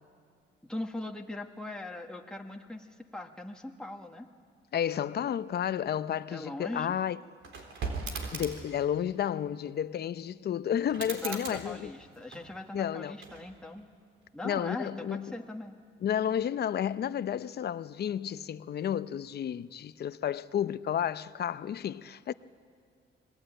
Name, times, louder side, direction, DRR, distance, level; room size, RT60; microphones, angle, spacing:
voice 1, 0.6-4.3 6.3-6.9 11.0-13.9 14.3-15.8, left 1 dB, 5° left, 1.6 m, -40 dB
voice 2, 4.7-7.2 8.3-11.9 12.7-13.2 14.4-15.3 16.0-22.3, left 9 dB, 55° left, 0.7 m, -31 dB
sound 1, 7.4-8.8 10.8-12.7 13.2-13.8, right 4 dB, 75° right, 4.0 m, -39 dB
26.0 x 20.5 x 9.0 m
cardioid pair, 90°, 20 cm